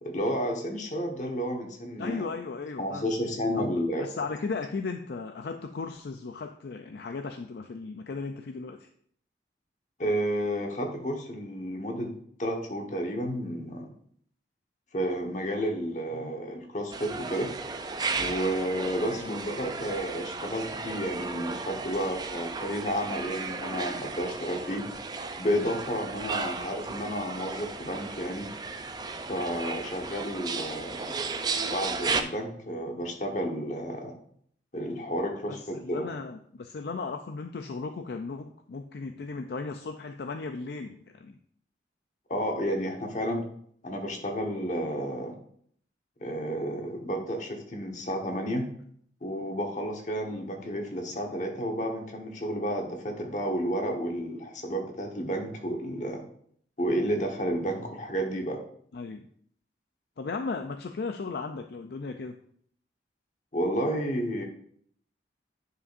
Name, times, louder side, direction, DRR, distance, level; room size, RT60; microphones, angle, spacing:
voice 1, 0.0-2.2 2.8-4.1 10.0-12.1 12.4-13.9 14.9-17.5 18.2-24.9 25.4-28.5 29.3-31.2 31.6-34.1 34.7-35.6 35.9-36.1 42.3-43.4 43.8-45.4 46.2-48.7 49.2-56.2 56.8-58.6 63.5-64.4, equal, 40° left, 2 dB, 1.2 m, -31 dB
voice 2, 2.0-3.2 3.6-8.9 16.1-16.3 19.2-19.4 35.5-41.4 58.9-59.3 60.2-62.4, left 4 dB, 65° left, 6 dB, 0.4 m, -36 dB
sound 1, 16.9-32.2, right 4 dB, 20° right, 0.4 m, -35 dB
9.8 x 5.4 x 2.5 m, 0.63 s
head